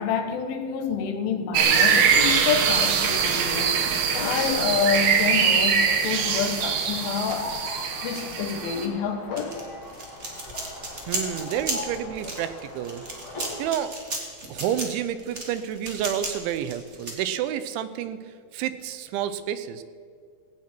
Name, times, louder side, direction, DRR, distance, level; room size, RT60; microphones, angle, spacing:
voice 1, 0.0-3.9 4.1-7.5 8.0-9.6, left 6 dB, 90° left, 7 dB, 3.9 m, -28 dB
sound 1, 1.5-8.8, right 6 dB, 65° right, 3.1 m, -23 dB
sound 2, 4.1-13.7, left 2 dB, 35° left, 6.1 m, -41 dB
sound 3, 9.4-17.1, right 1 dB, 20° right, 2.3 m, -34 dB
voice 2, 11.1-13.0 13.6-13.9 14.5-19.8, right 10 dB, 80° right, 12 dB, 3.2 m, -30 dB
18.0 x 17.5 x 4.5 m, 2.2 s
omnidirectional pair, 5.4 m